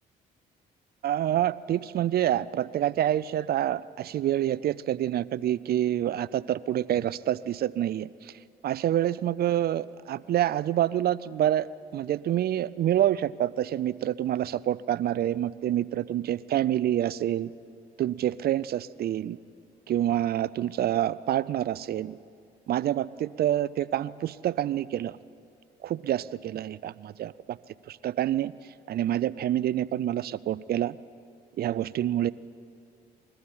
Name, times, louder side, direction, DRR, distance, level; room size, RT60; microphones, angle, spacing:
voice 1, 1.0-8.3 8.6-11.7 11.9-17.5 18.0-19.4 19.9-22.2 22.7-25.2 25.8-27.6 27.9-28.5 28.9-31.0 31.6-32.3, right 12 dB, 60° right, 19 dB, 0.6 m, -27 dB
21.5 x 14.0 x 8.8 m, 2.4 s
supercardioid pair, 60°, 18 cm